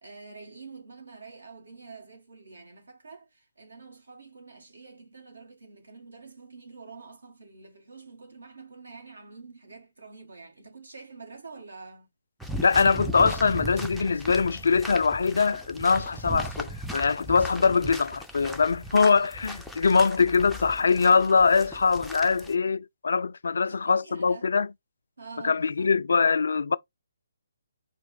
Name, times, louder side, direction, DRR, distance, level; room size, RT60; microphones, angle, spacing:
voice 1, 0.0-12.1 23.5-24.6 25.2-26.0, right 4 dB, 65° right, 1.9 m, -47 dB
sound 1, 12.4-22.5, equal, ahead, 0.5 m, -38 dB
voice 2, 12.6-24.7 25.4-26.8, left 5 dB, 60° left, 0.3 m, -23 dB
4.5 x 2.5 x 3.5 m
figure-of-eight pair, 140°, 0 cm